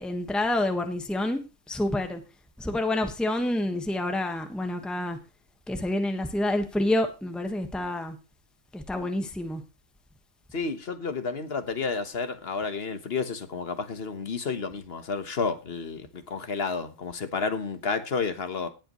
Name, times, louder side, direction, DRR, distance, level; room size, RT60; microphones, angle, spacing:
voice 1, 0.0-1.4 1.7-2.2 2.6-5.2 5.7-8.2 8.7-9.6, left 1 dB, ahead, 1.3 m, -28 dB
voice 2, 10.5-18.7, left 4 dB, 55° left, 1.4 m, -31 dB
18.0 x 7.8 x 3.1 m
omnidirectional pair, 1.3 m